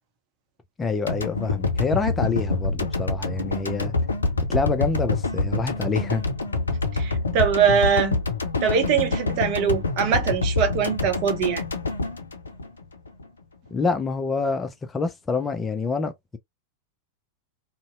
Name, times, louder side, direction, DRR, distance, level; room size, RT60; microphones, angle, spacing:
voice 1, 0.8-3.9 4.5-6.3 13.7-16.4, left 4 dB, 15° left, 0.4 m, -26 dB
sound 1, 1.1-13.3, left 3 dB, 75° left, 0.4 m, -26 dB
voice 2, 6.9-8.2 8.6-11.6, right 7 dB, 40° right, 0.7 m, -22 dB
2.6 x 2.0 x 2.5 m
figure-of-eight pair, 90°, 0 cm